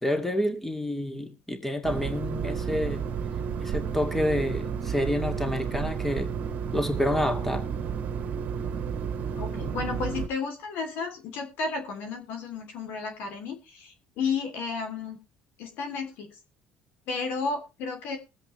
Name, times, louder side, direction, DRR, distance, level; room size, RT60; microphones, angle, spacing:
voice 1, 0.0-3.1 3.6-6.3 6.7-7.7, left 1 dB, 10° left, 2.1 m, -28 dB
sound 1, 1.8-10.3, right 7 dB, 55° right, 1.3 m, -31 dB
voice 2, 9.3-15.2 15.6-16.3 17.1-18.2, left 4 dB, 75° left, 2.9 m, -32 dB
21.0 x 7.9 x 3.2 m
supercardioid pair, 85°, 3 cm